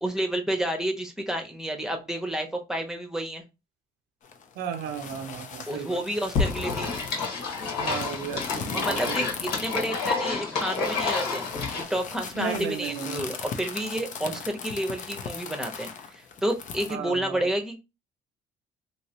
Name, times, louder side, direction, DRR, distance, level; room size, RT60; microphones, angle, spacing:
voice 1, 0.0-3.4 5.7-6.9 8.7-11.5 11.7-17.8, right 1 dB, 5° right, 0.8 m, -30 dB
sound 1, 4.2-16.9, left 6 dB, 50° left, 0.6 m, -39 dB
voice 2, 4.6-6.0 7.8-9.2 12.3-13.3 14.2-14.4 16.9-17.5, right 7 dB, 75° right, 0.6 m, -35 dB
sound 2, 6.4-11.8, left 4 dB, 75° left, 1.4 m, -29 dB
3.1 x 2.8 x 2.9 m
cardioid pair, 110°, 17 cm